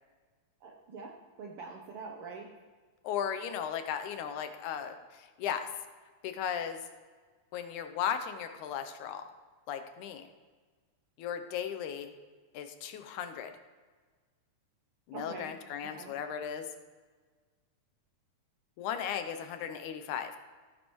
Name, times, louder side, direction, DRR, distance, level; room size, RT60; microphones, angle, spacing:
voice 1, 0.6-1.1 1.4-2.5 15.1-15.5 15.9-16.1, right 4 dB, 70° right, 1 dB, 1.4 m, -44 dB
voice 2, 3.0-5.7 6.2-6.8 7.5-9.2 9.7-10.3 11.2-12.1 12.5-13.5 15.1-16.7 18.8-20.3, left 8 dB, 80° left, 8 dB, 2.1 m, -36 dB
16.0 x 9.6 x 3.0 m, 1.5 s
omnidirectional pair, 3.4 m